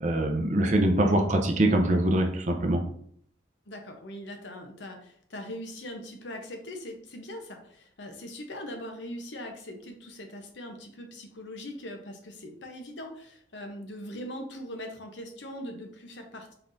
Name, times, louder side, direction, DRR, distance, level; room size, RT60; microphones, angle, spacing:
voice 1, 0.0-2.8, right 1 dB, 40° right, 3 dB, 0.6 m, -23 dB
voice 2, 3.7-16.5, left 1 dB, 80° left, 4 dB, 0.9 m, -41 dB
4.5 x 3.8 x 2.6 m, 0.64 s
head